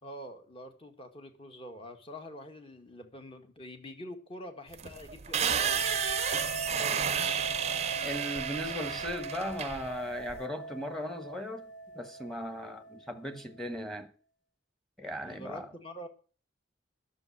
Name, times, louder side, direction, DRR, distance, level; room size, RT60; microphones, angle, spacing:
voice 1, 0.0-5.9 15.2-16.1, left 1 dB, 30° left, 1.7 m, -46 dB
sound 1, 4.7-10.4, right 8 dB, 35° right, 0.6 m, -32 dB
sound 2, 5.5-13.6, right 1 dB, 45° left, 1.6 m, -41 dB
voice 2, 6.7-7.1 8.0-14.1 15.0-15.7, equal, ahead, 1.4 m, -38 dB
11.5 x 6.9 x 8.6 m
head